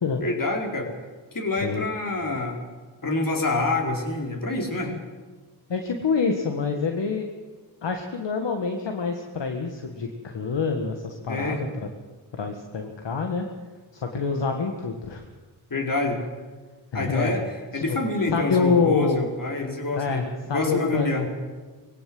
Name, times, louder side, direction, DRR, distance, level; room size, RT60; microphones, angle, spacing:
voice 1, 0.2-0.9 1.3-2.6 3.0-4.9 11.3-11.6 15.7-16.2 16.9-17.4 17.7-21.3, left 2 dB, 45° left, 1 dB, 4.6 m, -26 dB
voice 2, 5.7-7.3 7.8-11.9 12.3-13.5 13.9-15.3 16.9-17.3 17.7-18.0 18.3-19.3 19.9-21.3, left 5 dB, 60° left, 4 dB, 1.8 m, -26 dB
20.0 x 17.0 x 7.8 m, 1.4 s
cardioid pair, 45°, 48 cm